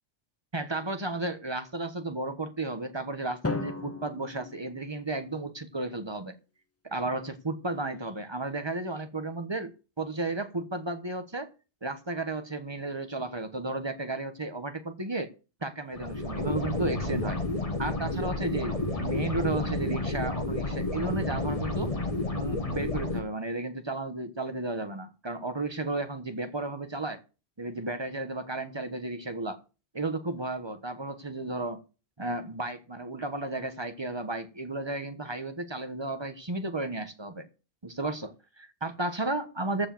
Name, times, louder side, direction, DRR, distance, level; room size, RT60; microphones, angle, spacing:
voice 1, 0.5-6.4 6.8-11.5 11.8-15.3 15.6-17.4 17.8-21.9 22.3-27.2 27.6-29.6 29.9-31.8 32.2-37.5 37.8-39.9, right 2 dB, 25° right, 1.2 m, -33 dB
Drum, 3.4-5.5, left 3 dB, 15° left, 0.6 m, -36 dB
sound 1, 15.9-23.2, left 2 dB, 30° left, 1.5 m, -31 dB
14.0 x 4.8 x 7.7 m
omnidirectional pair, 1.2 m